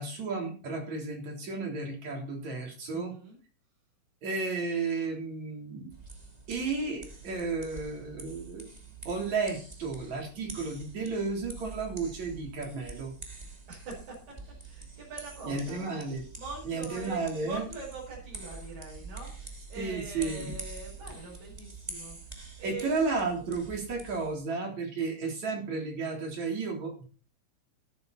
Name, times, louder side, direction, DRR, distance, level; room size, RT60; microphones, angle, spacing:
voice 1, 0.0-3.2 4.2-5.9 6.5-8.7 9.0-13.1 15.4-16.2 16.6-17.6 19.8-20.6 22.6-27.0, right 4 dB, 55° right, 2 dB, 4.9 m, -33 dB
voice 2, 2.9-3.4 13.7-15.8 16.4-22.9, right 3 dB, 85° right, -6 dB, 7.3 m, -43 dB
sound 1, 5.9-24.4, right 3 dB, 15° right, 2.2 m, -46 dB
13.0 x 12.5 x 4.2 m, 0.37 s
omnidirectional pair, 3.9 m